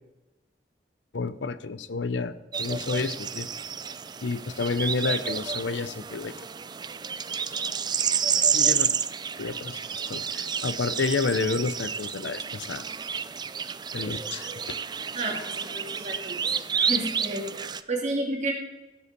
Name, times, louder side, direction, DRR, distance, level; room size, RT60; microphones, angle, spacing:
voice 1, 1.1-3.5 4.2-6.3 8.3-8.9 9.4-12.8 13.9-14.5, left 4 dB, 85° left, 14 dB, 0.6 m, -30 dB
sound 1, 2.5-17.8, right 7 dB, 25° right, 0.4 m, -30 dB
voice 2, 15.1-16.5 16.8-18.5, right 2 dB, 40° right, 0 dB, 2.5 m, -31 dB
15.5 x 5.5 x 6.7 m, 1.1 s
head